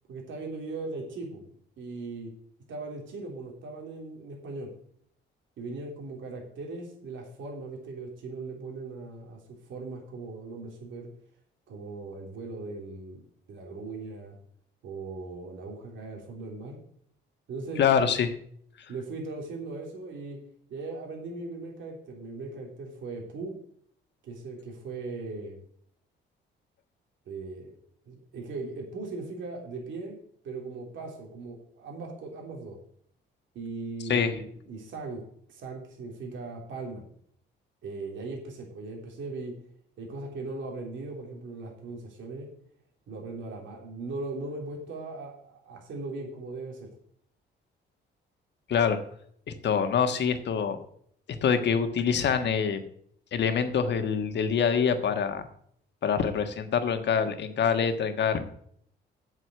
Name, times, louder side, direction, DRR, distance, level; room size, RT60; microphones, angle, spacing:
voice 1, 0.1-1.5 1.8-2.3 2.7-4.7 5.6-11.1 11.7-13.2 13.5-14.4 14.8-16.8 17.5-18.0 18.9-20.4 20.7-23.6 24.2-25.6 27.3-27.7 28.1-30.2 30.4-32.8 33.6-35.2 35.5-37.0 37.8-39.6 40.0-42.5 43.1-46.9, right 3 dB, 75° right, 0 dB, 3.4 m, -39 dB
voice 2, 17.8-18.3 34.1-34.3 48.7-49.0 49.5-50.8 51.3-52.8 53.3-55.5 56.0-58.5, left 7 dB, 60° left, 8 dB, 1.5 m, -25 dB
7.9 x 7.5 x 7.8 m, 0.65 s
cardioid pair, 90°, 20 cm